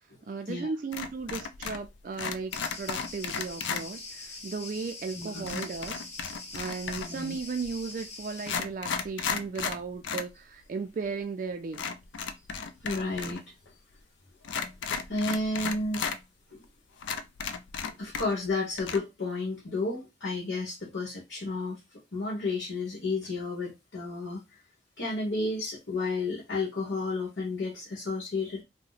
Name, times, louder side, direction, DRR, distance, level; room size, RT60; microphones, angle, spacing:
voice 1, 0.3-6.0 6.5-11.9, right 4 dB, 45° right, 0.3 m, -36 dB
sound 1, 0.9-1.9 2.1-3.8 5.5-7.2 7.9-8.0 8.4-10.3 10.6-10.7 11.7-13.4 13.7-13.8 14.4-16.2 16.6-16.7 17.0-18.5 18.8-19.0, left 6 dB, 85° left, 0.4 m, -34 dB
Cricket, 2.5-8.6, left 3 dB, 40° left, 0.7 m, -44 dB
voice 2, 5.1-5.6 7.0-7.3 12.8-13.4 15.1-16.1 16.5-16.6 18.0-24.4 25.0-28.6, left 3 dB, 65° left, 1.2 m, -32 dB
2.8 x 2.1 x 3.9 m
head